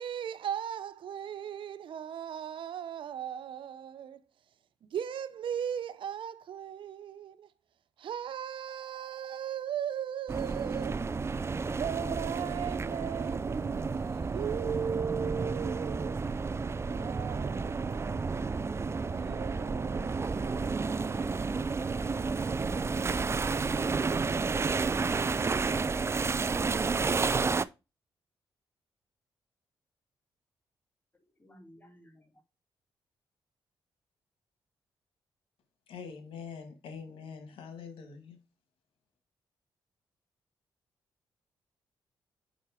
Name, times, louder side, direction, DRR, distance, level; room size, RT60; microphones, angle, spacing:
voice 1, 0.0-4.2 4.8-7.5 8.0-11.0 11.8-16.1 16.9-18.6 19.1-21.5, right 8 dB, 70° right, 0.7 m, -37 dB
sound 1, 10.3-27.6, right 4 dB, 30° right, 0.4 m, -31 dB
voice 2, 11.6-12.8 13.1-13.3 31.1-32.4, left 1 dB, 20° left, 2.1 m, -51 dB
voice 3, 35.9-38.4, left 6 dB, 80° left, 1.8 m, -44 dB
6.1 x 5.5 x 4.9 m
cardioid pair, 65°, 9 cm